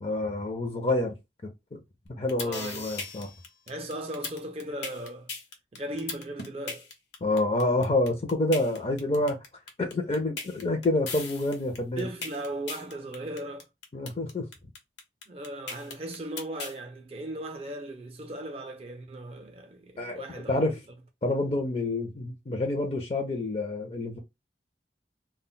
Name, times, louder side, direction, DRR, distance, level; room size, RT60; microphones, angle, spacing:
voice 1, 0.0-1.2 1.7-1.8 2.2-3.3 7.2-9.4 9.8-12.1 13.9-14.5 20.0-20.8 21.2-24.2, left 2 dB, 35° left, 0.4 m, -28 dB
sound 1, 2.1-16.8, left 4 dB, 75° left, 0.8 m, -38 dB
voice 2, 2.4-3.0 3.7-5.3 5.7-6.9 12.0-13.7 15.3-20.6, right 1 dB, 35° right, 0.4 m, -37 dB
2.1 x 2.1 x 3.7 m
head